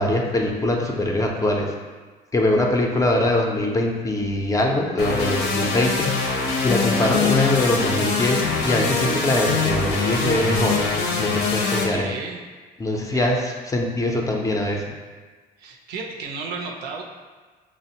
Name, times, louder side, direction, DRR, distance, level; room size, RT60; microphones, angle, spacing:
voice 1, 0.0-1.7 2.3-6.1 6.6-10.8 11.2-12.1 12.8-14.8, left 1 dB, 20° left, 0 dB, 0.4 m, -22 dB
sound 1, 5.0-11.8, left 4 dB, 85° left, 0.6 m, -23 dB
voice 2, 11.7-12.4 12.9-13.3 15.6-17.0, right 4 dB, 70° right, 1 dB, 0.5 m, -34 dB
5.0 x 2.0 x 2.8 m, 1.4 s
cardioid pair, 110°, 17 cm